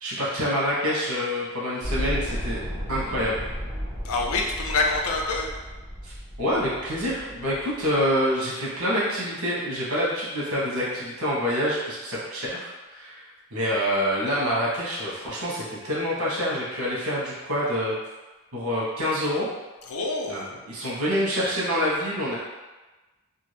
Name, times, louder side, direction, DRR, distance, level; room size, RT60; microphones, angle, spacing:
voice 1, 0.0-2.6 2.9-3.4 6.0-6.1 6.4-13.2 13.5-18.0 18.5-19.5 20.3-22.4, equal, 80° right, -6 dB, 1.0 m, -26 dB
sound 1, 1.8-8.1, equal, 20° right, 1.0 m, -34 dB
voice 2, 4.0-5.5 19.9-20.5, left 3 dB, 75° left, 0 dB, 0.5 m, -26 dB
2.6 x 2.3 x 3.2 m, 1.2 s
head